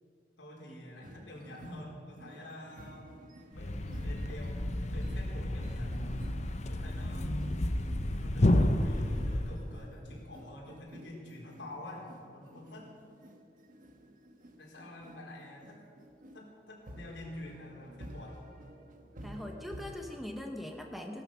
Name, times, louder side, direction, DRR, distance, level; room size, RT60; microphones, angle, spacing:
voice 1, 0.4-3.1 3.5-4.6 4.9-6.1 6.7-7.3 8.2-12.9 14.6-15.8 16.3-18.4, left 1 dB, 75° left, -2 dB, 4.2 m, -47 dB
sound 1, 1.0-20.2, equal, 45° right, 1.3 m, -51 dB
Thump thud, 3.5-9.7, left 1 dB, 40° left, 0.8 m, -31 dB
voice 2, 19.2-21.2, left 1 dB, ahead, 3 dB, 1.0 m, -41 dB
17.5 x 12.0 x 6.2 m, 2.4 s
head